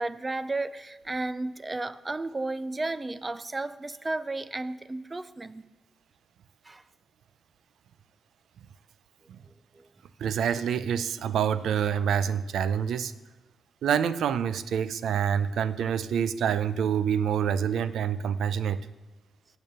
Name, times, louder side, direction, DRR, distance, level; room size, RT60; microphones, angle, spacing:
voice 1, 0.0-5.6 6.6-6.8 9.7-9.9, right 2 dB, 20° right, 15 dB, 0.3 m, -33 dB
voice 2, 10.2-13.1 13.8-18.8, right 8 dB, 90° right, 15 dB, 0.4 m, -27 dB
8.8 x 7.1 x 7.6 m, 1.1 s
wide cardioid pair, 160°, 0 cm